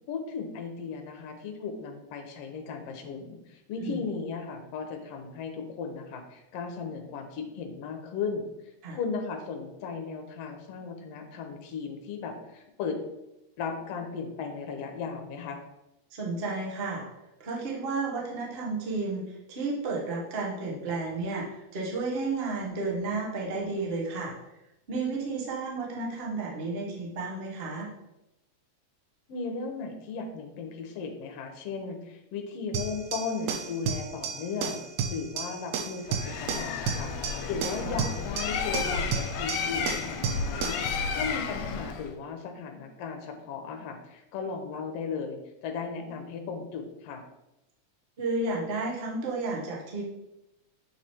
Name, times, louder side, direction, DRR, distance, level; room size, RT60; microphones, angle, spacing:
voice 1, 0.1-8.5 8.9-13.0 13.6-15.6 29.3-34.8 35.1-37.1 37.5-47.2, left 5 dB, 70° left, 5 dB, 1.7 m, -36 dB
voice 2, 16.1-17.0 17.4-24.3 24.9-27.9 37.8-38.0 48.2-50.0, right 3 dB, 60° right, -3 dB, 0.6 m, -32 dB
sound 1, 32.7-40.9, right 6 dB, 80° right, 1.9 m, -33 dB
Bird, 36.1-42.1, left 5 dB, 85° left, 1.9 m, -32 dB
7.9 x 3.2 x 4.3 m, 0.92 s
omnidirectional pair, 3.3 m